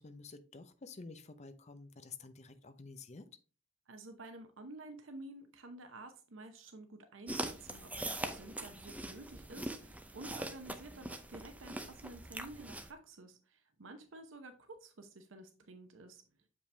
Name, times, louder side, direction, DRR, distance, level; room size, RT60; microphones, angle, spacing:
voice 1, 0.0-3.3, left 4 dB, 35° left, 11 dB, 0.6 m, -50 dB
voice 2, 3.9-16.2, right 2 dB, 85° right, 7 dB, 0.8 m, -51 dB
sound 1, 7.3-12.9, right 1 dB, 10° right, 0.6 m, -42 dB
6.9 x 5.3 x 3.3 m, 0.37 s
head